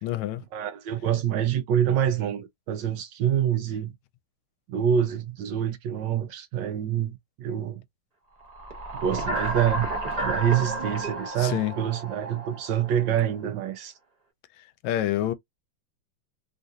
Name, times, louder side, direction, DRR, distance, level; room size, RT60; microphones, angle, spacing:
voice 1, 0.0-0.4 11.4-11.7 14.8-15.3, left 13 dB, 85° left, 1.4 m, -27 dB
voice 2, 0.5-3.9 4.7-7.8 8.9-9.9 10.2-13.9, right 9 dB, 75° right, 1.2 m, -26 dB
sound 1, 8.5-13.2, right 2 dB, 40° right, 0.6 m, -32 dB
3.6 x 2.4 x 2.7 m
omnidirectional pair, 2.3 m